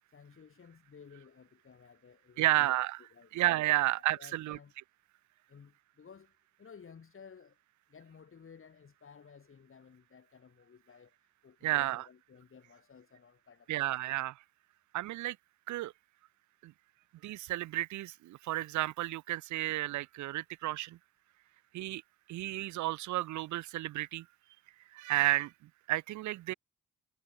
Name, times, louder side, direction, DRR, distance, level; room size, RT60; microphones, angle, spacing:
voice 1, 0.1-2.7 3.1-3.3 3.8-3.9 4.2-4.7 5.5-7.6 7.9-13.9, left 6 dB, 45° left, 7.7 m, -56 dB
voice 2, 2.4-3.0 3.3-4.6 11.6-12.1 13.7-14.4 14.9-15.4 15.7-15.9 16.6-16.7 17.2-21.0 21.7-22.0 22.3-24.3 24.9-26.5, right 16 dB, 70° right, 0.6 m, -32 dB
cardioid pair, 90°, 30 cm